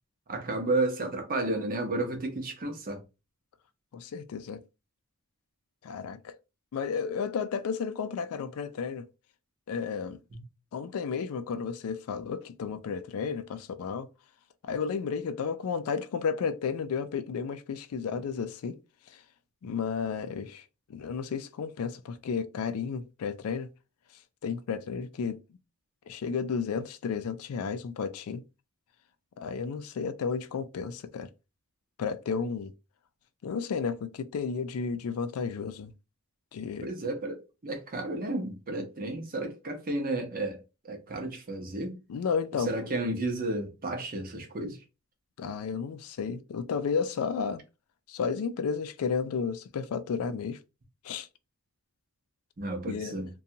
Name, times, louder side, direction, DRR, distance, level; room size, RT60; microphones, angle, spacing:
voice 1, 0.3-3.0 10.3-10.4 36.8-40.6 40.9-42.0 42.7-44.8 52.6-53.3, right 2 dB, 40° right, 0.7 m, -32 dB
voice 2, 3.9-4.6 5.8-6.3 6.7-9.0 9.7-10.2 10.7-14.1 14.6-18.8 19.1-19.2 19.6-20.6 20.9-23.7 24.4-25.4 26.1-28.4 29.4-31.3 32.0-32.7 33.4-35.9 36.5-36.9 42.1-42.7 45.4-47.6 48.1-50.6 51.0-51.3 52.9-53.1, left 6 dB, 75° left, 0.3 m, -32 dB
2.6 x 2.2 x 2.7 m
head